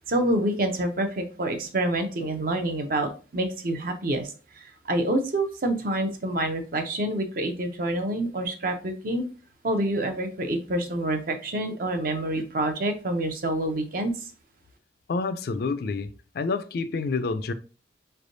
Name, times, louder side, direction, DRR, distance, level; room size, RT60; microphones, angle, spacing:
voice 1, 0.1-9.3 9.6-14.3, right 1 dB, 50° right, 0.6 m, -27 dB
voice 2, 15.1-16.1 16.3-17.5, left 4 dB, 55° left, 0.3 m, -28 dB
4.3 x 3.3 x 2.6 m
head